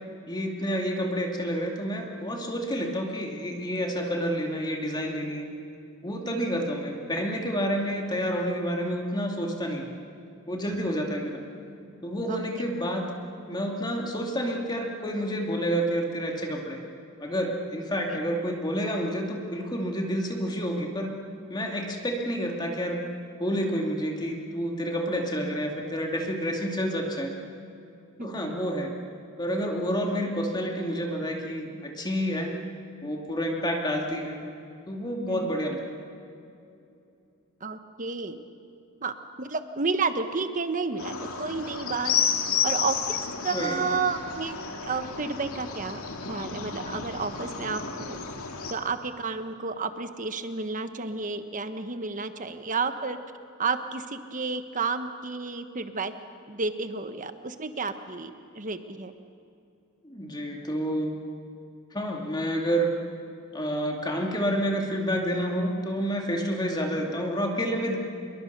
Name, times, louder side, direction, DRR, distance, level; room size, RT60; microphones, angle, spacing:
voice 1, 0.3-5.5 6.0-9.9 10.5-11.4 12.0-13.1 13.5-16.8 17.2-21.2 21.5-23.0 23.4-27.3 28.2-28.9 29.4-32.6 33.0-34.4 34.9-35.8 43.5-44.0 60.0-61.2 61.9-62.9 63.5-68.0, equal, 20° left, 1 dB, 2.6 m, -29 dB
voice 2, 6.2-6.5 12.3-12.4 18.1-18.2 28.2-28.6 35.3-35.5 37.6-38.4 39.0-42.1 42.6-43.2 43.4-44.5 44.8-46.0 46.3-48.2 48.7-53.2 53.6-56.1 56.5-59.1, right 4 dB, 35° right, 9 dB, 1.3 m, -31 dB
sound 1, 41.0-48.7, left 7 dB, 80° left, 2.3 m, -31 dB
27.5 x 22.5 x 6.8 m, 2.6 s
head